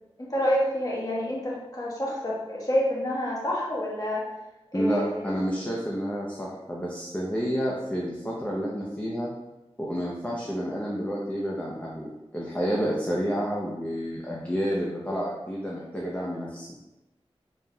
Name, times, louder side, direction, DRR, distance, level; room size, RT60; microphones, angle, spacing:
voice 1, 0.2-4.3 4.7-5.3, equal, 35° left, -5 dB, 1.4 m, -28 dB
voice 2, 4.7-9.3 9.8-16.8, equal, 15° left, -4 dB, 0.7 m, -30 dB
4.0 x 3.8 x 2.3 m, 1.0 s
wide cardioid pair, 40°, 11 cm